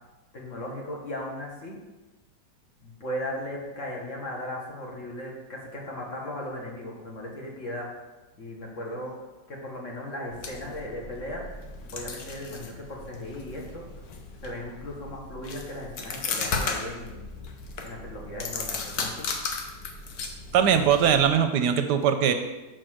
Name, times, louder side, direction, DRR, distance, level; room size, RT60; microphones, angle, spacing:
voice 1, 0.3-1.8 2.8-7.9 8.4-9.2 9.5-11.4 11.9-14.0 14.4-17.2 17.8-19.3, left 1 dB, 45° left, -2 dB, 1.7 m, -37 dB
sound 1, 10.3-21.4, left 4 dB, 65° left, 1.3 m, -36 dB
voice 2, 20.5-22.3, right 8 dB, 75° right, 8 dB, 1.1 m, -21 dB
6.5 x 4.5 x 6.3 m, 1.1 s
omnidirectional pair, 1.9 m